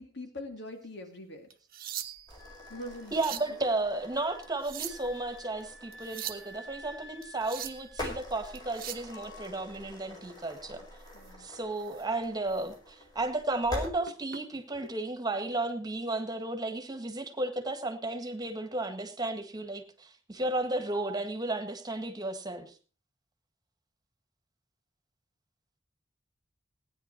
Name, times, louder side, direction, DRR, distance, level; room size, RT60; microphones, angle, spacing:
voice 1, 0.0-1.5 2.7-3.4 10.1-10.4 11.1-11.5 14.7-14.9, left 1 dB, 65° left, 5 dB, 2.3 m, -43 dB
sound 1, 1.5-2.4 2.9-3.5 4.4-5.2 5.9-6.5 7.2-7.9 8.6-9.1 11.1-11.3 11.8-12.0 12.5-12.6 13.8-14.4 15.5-15.7, right 11 dB, 50° right, 1.0 m, -41 dB
sound 2, 2.3-13.9, left 1 dB, 20° left, 4.7 m, -45 dB
Wind instrument woodwind instrument, 2.4-8.8 9.1-9.7, left 2 dB, 80° left, 7.6 m, -52 dB
voice 2, 3.1-10.8 11.4-22.7, right 2 dB, 20° right, 6 dB, 1.8 m, -33 dB
16.5 x 10.0 x 4.5 m, 0.37 s
head